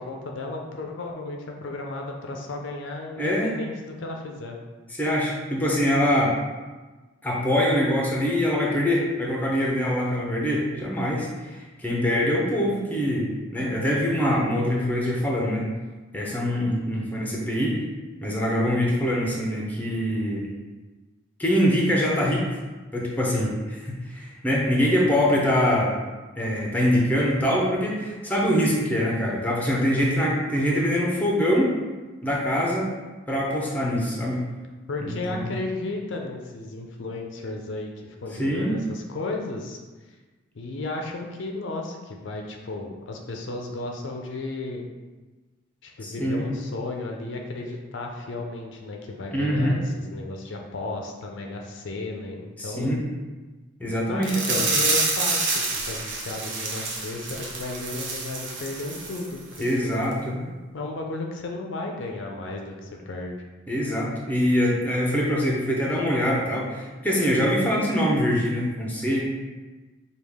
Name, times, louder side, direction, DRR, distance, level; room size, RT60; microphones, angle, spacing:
voice 1, 0.0-3.7 4.0-4.6 30.1-30.3 34.9-39.8 40.5-44.9 45.8-52.9 54.1-63.4, left 2 dB, 65° left, 1 dB, 0.5 m, -34 dB
voice 2, 3.2-3.5 5.0-6.3 7.2-15.7 16.1-17.8 18.2-20.4 21.4-22.4 22.9-25.9 26.4-31.7 32.2-32.9 33.3-34.4 35.0-35.5 38.4-38.8 46.0-46.4 49.3-49.8 52.6-53.0 53.8-54.6 59.6-60.4 63.7-69.3, equal, 10° left, -3 dB, 0.6 m, -24 dB
sound 1, 54.2-59.3 59.5-59.7 60.1-60.2, right 3 dB, 65° right, 0.8 m, -27 dB
4.9 x 2.3 x 3.5 m, 1.2 s
head